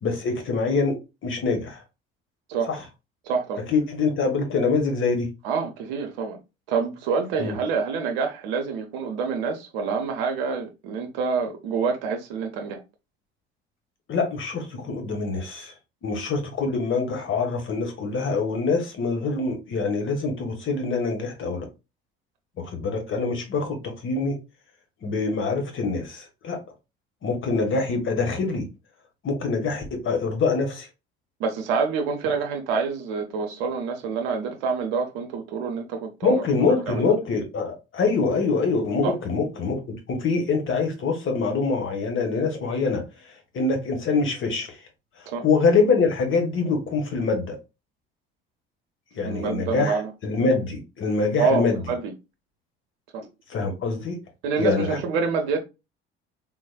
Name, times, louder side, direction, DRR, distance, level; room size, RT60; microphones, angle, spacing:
voice 1, 0.0-1.0 1.2-1.8 2.7-2.8 3.7-5.3 7.4-7.6 14.1-15.7 16.0-21.7 22.6-24.4 25.0-26.6 27.2-28.7 29.2-30.9 36.2-39.8 40.1-44.8 45.2-47.6 49.1-51.8 53.5-54.2 54.6-55.0, left 4 dB, 45° left, 1.3 m, -25 dB
voice 2, 3.3-3.6 5.4-6.4 6.7-12.8 31.4-36.4 36.9-37.1 39.0-39.2 45.3-45.4 49.2-50.1 51.4-52.1 53.1-53.3 54.4-55.6, right 5 dB, 70° right, 0.6 m, -27 dB
3.6 x 3.1 x 2.2 m
hypercardioid pair, 55°, 29 cm